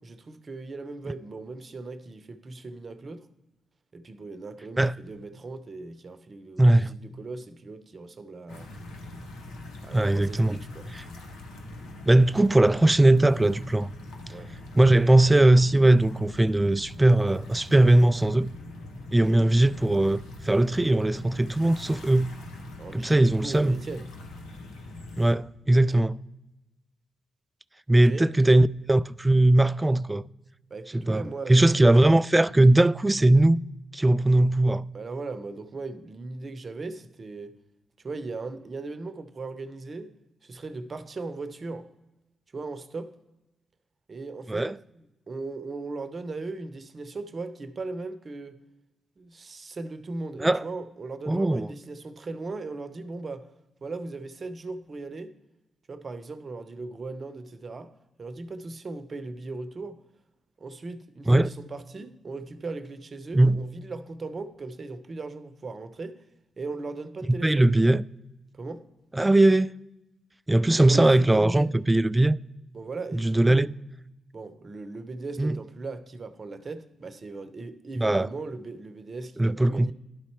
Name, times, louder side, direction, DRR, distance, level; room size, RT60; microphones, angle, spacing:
voice 1, 0.0-3.2 3.9-8.7 9.8-10.9 14.3-14.5 19.1-19.4 22.8-24.1 25.8-26.1 28.0-28.3 30.7-31.9 34.9-37.6 38.0-40.1 40.4-41.9 42.5-43.1 44.1-44.7 45.3-48.6 49.2-53.5 53.8-55.3 55.9-57.9 58.2-60.0 60.6-66.2 66.6-67.7 68.5-68.8 70.8-71.7 72.7-73.7 74.3-79.9, right 3 dB, 50° right, 0.8 m, -38 dB
voice 2, 6.6-6.9 9.9-10.6 12.1-13.9 14.7-18.5 19.1-22.3 22.9-23.8 25.2-26.2 27.9-30.2 30.9-31.2 31.5-33.6 33.9-34.9 44.5-44.7 50.4-50.6 51.3-51.7 61.3-61.5 63.3-63.6 67.2-68.0 69.1-69.8 70.5-72.4 73.1-73.7 75.4-75.6 78.0-78.3 79.4-79.9, right 1 dB, 20° right, 0.3 m, -20 dB
sound 1, 8.5-25.3, left 2 dB, 80° left, 1.1 m, -42 dB
11.5 x 4.1 x 4.6 m
hypercardioid pair, 40°, 0 cm